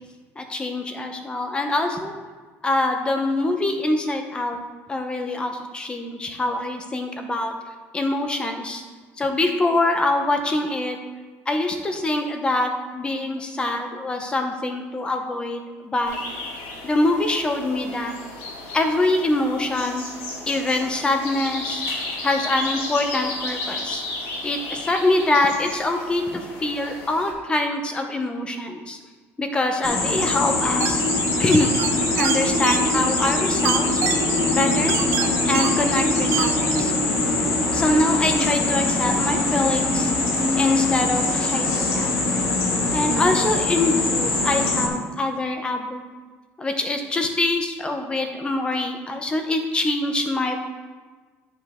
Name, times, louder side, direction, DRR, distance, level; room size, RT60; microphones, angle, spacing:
voice 1, 0.4-2.1 2.6-4.6 4.9-7.5 7.9-8.8 9.2-11.0 11.5-16.2 16.8-18.1 18.7-20.0 20.5-21.8 22.2-24.0 24.4-29.0 29.4-31.0 31.4-31.7 32.1-34.0 34.5-35.0 35.5-36.9 37.7-40.1 40.6-42.2 42.9-46.0 46.6-50.6, left 2 dB, 15° left, 5 dB, 0.8 m, -24 dB
sound 1, 16.0-27.3, left 2 dB, 90° left, 1.9 m, -33 dB
sound 2, 29.8-44.9, left 2 dB, 55° left, 1.4 m, -22 dB
sound 3, 30.8-36.8, right 10 dB, 55° right, 0.5 m, -30 dB
10.0 x 5.2 x 3.6 m, 1.4 s
cardioid pair, 140°, 6 cm